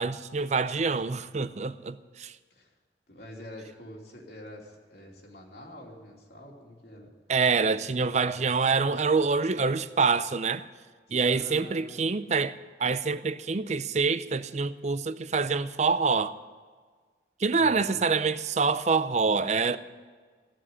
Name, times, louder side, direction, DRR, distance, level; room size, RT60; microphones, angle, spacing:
voice 1, 0.0-2.4 7.3-10.7 11.1-16.4 17.4-19.8, right 4 dB, 40° right, 0.5 m, -26 dB
voice 2, 3.1-7.1 11.1-12.0 17.6-17.9, left 1 dB, 60° left, 2.9 m, -46 dB
15.0 x 7.6 x 9.8 m
head